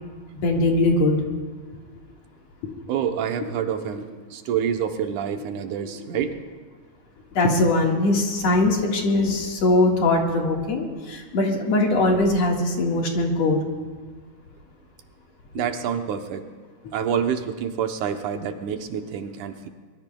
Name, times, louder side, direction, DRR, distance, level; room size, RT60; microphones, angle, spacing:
voice 1, 0.3-1.2 2.6-2.7 5.8-5.9 7.3-13.6, left 2 dB, 60° left, 0 dB, 2.7 m, -21 dB
voice 2, 2.9-6.4 15.5-16.4 16.9-19.7, right 8 dB, 75° right, 6 dB, 2.3 m, -27 dB
23.5 x 22.0 x 2.3 m, 1.5 s
omnidirectional pair, 3.6 m